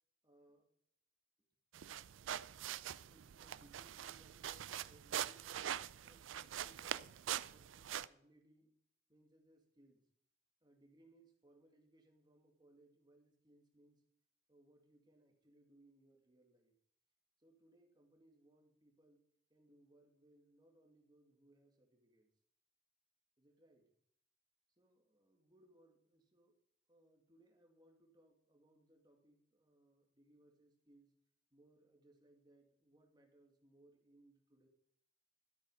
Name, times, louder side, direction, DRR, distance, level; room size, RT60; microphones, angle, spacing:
voice 1, 0.2-0.7 2.2-5.5 6.0-8.7 9.1-10.1 10.6-14.0 14.5-16.7 17.4-19.2 19.5-22.3 23.4-23.9 24.7-26.6 26.9-31.2 31.5-34.7, right 1 dB, 25° right, 2 dB, 2.4 m, -69 dB
sound 1, 1.7-8.1, right 10 dB, 90° right, 0.4 m, -44 dB
13.0 x 8.6 x 5.6 m, 0.68 s
head